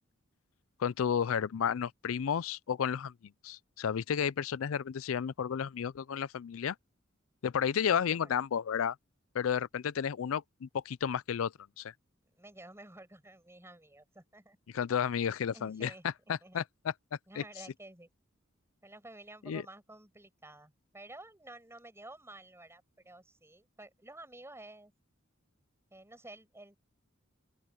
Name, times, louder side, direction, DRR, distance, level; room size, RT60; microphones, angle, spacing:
voice 1, 0.8-3.1 3.4-6.8 7.4-9.0 9.3-11.9 14.7-15.9 16.3-16.9 17.4-17.5 19.5-19.6, left 7 dB, 85° left, 0.4 m, -32 dB
voice 2, 7.8-8.3 12.3-14.6 15.5-16.0 16.4-16.6 17.3-18.1 18.8-24.9 25.9-26.8, right 2 dB, 15° right, 6.5 m, -52 dB
open air
head